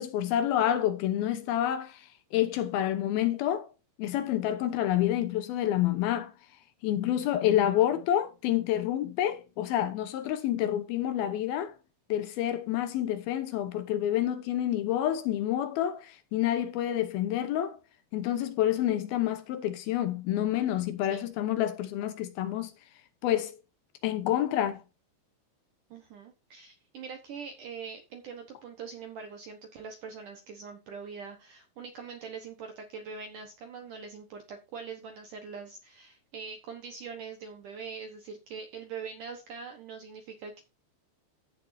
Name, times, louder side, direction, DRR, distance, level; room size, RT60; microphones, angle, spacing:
voice 1, 0.0-3.7 4.0-6.3 6.8-11.7 12.1-17.8 18.1-22.7 23.2-23.6 24.0-24.8, left 12 dB, 75° left, 2.3 m, -28 dB
voice 2, 25.9-40.6, right 5 dB, 70° right, 2.0 m, -43 dB
15.5 x 6.8 x 2.7 m
omnidirectional pair, 5.3 m